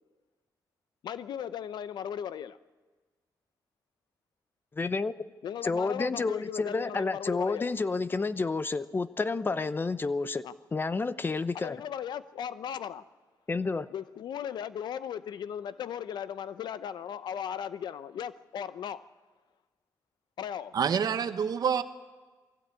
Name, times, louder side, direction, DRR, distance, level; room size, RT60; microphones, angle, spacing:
voice 1, 1.0-2.6 5.4-7.7 10.4-10.5 11.5-13.0 13.9-19.1 20.4-20.7, left 9 dB, 80° left, 0.7 m, -37 dB
voice 2, 4.7-5.1 5.6-10.4 10.7-11.8 13.5-13.9, left 3 dB, 30° left, 0.8 m, -30 dB
voice 3, 20.7-21.8, right 7 dB, 65° right, 1.1 m, -27 dB
21.5 x 16.0 x 8.4 m
cardioid pair, 95°, 7 cm